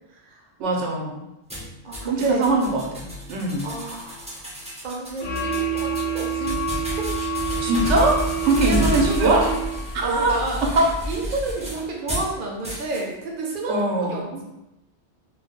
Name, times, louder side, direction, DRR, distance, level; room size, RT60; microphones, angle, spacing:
voice 1, 0.1-0.5 1.8-2.4 3.6-4.5 4.8-6.7 7.0-7.1 8.6-9.6 9.9-10.6 11.0-14.4, right 2 dB, 55° right, -1 dB, 0.7 m, -30 dB
voice 2, 0.6-1.2 2.1-3.7 7.6-9.4 9.9-10.9 13.7-14.4, right 2 dB, 90° right, -1 dB, 1.0 m, -22 dB
sound 1, 1.5-12.3 12.6-13.0, equal, 10° right, 0.3 m, -31 dB
sound 2, 5.2-10.0, right 4 dB, 70° left, 0.9 m, -27 dB
2.5 x 2.1 x 3.5 m, 0.93 s
omnidirectional pair, 1.2 m